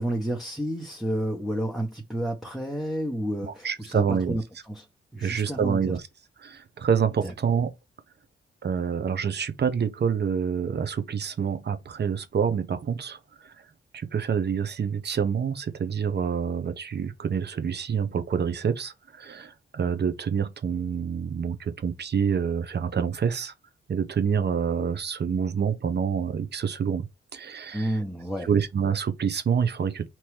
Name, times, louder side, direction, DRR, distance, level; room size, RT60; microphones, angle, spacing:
voice 1, 0.0-4.9 5.1-5.9 7.2-7.3 27.7-28.5, right 1 dB, ahead, 0.9 m, -30 dB
voice 2, 3.4-4.4 5.2-6.0 6.4-7.7 8.6-13.5 13.9-23.5 23.9-27.1 27.3-27.9 28.4-30.1, right 7 dB, 50° right, 0.9 m, -27 dB
4.4 x 3.0 x 3.3 m
cardioid pair, 60°, 21 cm